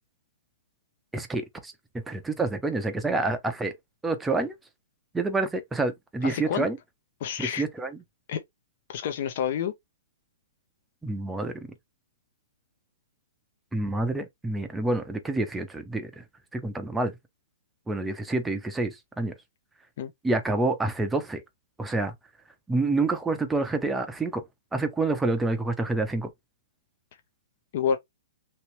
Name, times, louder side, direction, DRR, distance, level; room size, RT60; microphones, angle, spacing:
voice 1, 1.1-3.7 4.0-4.6 5.1-6.8 7.4-7.9 11.0-11.5 13.7-16.2 16.5-17.2 17.9-19.3 20.2-21.4 21.8-22.1 22.7-24.4 24.7-26.3, right 2 dB, 5° right, 0.5 m, -28 dB
voice 2, 6.2-6.7 7.2-7.6 8.3-8.4 8.9-9.7 20.0-20.1 27.7-28.0, left 8 dB, 50° left, 0.5 m, -28 dB
2.9 x 2.9 x 2.9 m
hypercardioid pair, 155°, 0 cm